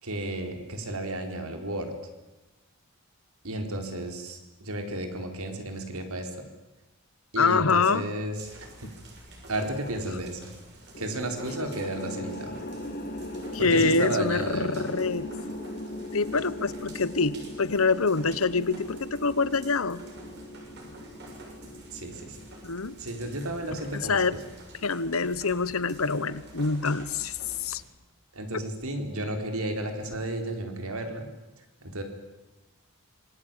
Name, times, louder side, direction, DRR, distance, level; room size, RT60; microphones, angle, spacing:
voice 1, 0.0-1.9 3.4-6.3 7.3-8.7 9.5-10.5 11.0-12.6 13.6-14.9 21.9-22.4 23.0-24.2 28.3-31.3 31.8-32.0, right 1 dB, 80° right, 5 dB, 4.2 m, -33 dB
voice 2, 7.4-8.0 8.8-8.9 13.5-15.2 16.1-20.0 22.6-23.0 23.9-24.4 24.8-27.8 28.5-28.6, left 4 dB, 75° left, 17 dB, 1.1 m, -26 dB
sound 1, 8.3-27.8, right 1 dB, 50° right, 7.1 m, -49 dB
sound 2, 10.9-23.3, left 1 dB, 40° left, 2.8 m, -39 dB
26.0 x 21.0 x 9.1 m, 1.1 s
head